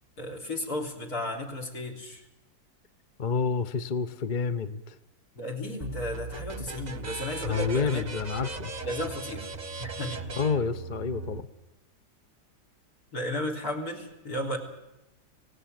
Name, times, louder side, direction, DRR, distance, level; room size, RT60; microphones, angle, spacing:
voice 1, 0.2-2.2 5.4-8.0 8.8-9.5 9.8-10.2 13.1-14.6, left 1 dB, 65° left, 5 dB, 3.9 m, -34 dB
voice 2, 3.2-5.0 7.4-8.7 10.4-11.5, left 5 dB, 40° left, 12 dB, 0.8 m, -29 dB
sound 1, 5.8-11.4, right 3 dB, 30° right, 1.0 m, -38 dB
24.0 x 17.5 x 9.4 m, 0.99 s
omnidirectional pair, 1.7 m